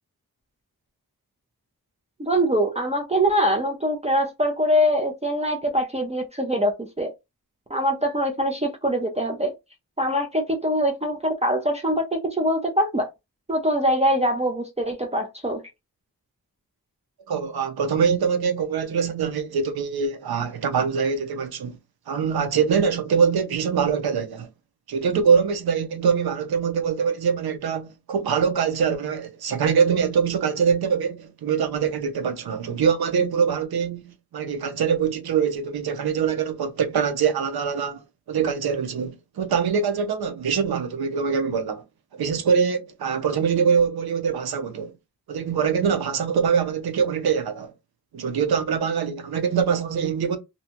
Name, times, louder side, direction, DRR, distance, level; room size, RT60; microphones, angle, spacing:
voice 1, 2.2-7.1 7.7-9.5 10.0-13.1 13.5-15.6, equal, 20° right, 0.4 m, -23 dB
voice 2, 17.3-21.8 22.1-24.5 24.9-41.8 42.1-44.9 45.3-47.7 48.1-50.4, right 6 dB, 90° right, 0.7 m, -23 dB
2.7 x 2.2 x 2.8 m
wide cardioid pair, 130°, 36 cm